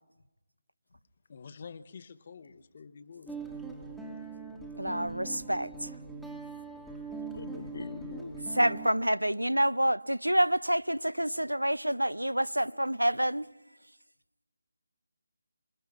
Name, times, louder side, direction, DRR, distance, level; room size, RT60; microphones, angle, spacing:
voice 1, 1.3-3.3, left 6 dB, 40° left, 0.9 m, -48 dB
Guitar, 3.3-8.9, right 4 dB, ahead, 1.4 m, -41 dB
voice 2, 4.7-5.9 8.6-13.5, right 1 dB, 85° right, 0.7 m, -28 dB
voice 3, 7.1-8.8 9.0-9.1, left 3 dB, 55° left, 1.3 m, -44 dB
27.0 x 20.5 x 5.8 m
figure-of-eight pair, 155°, 0 cm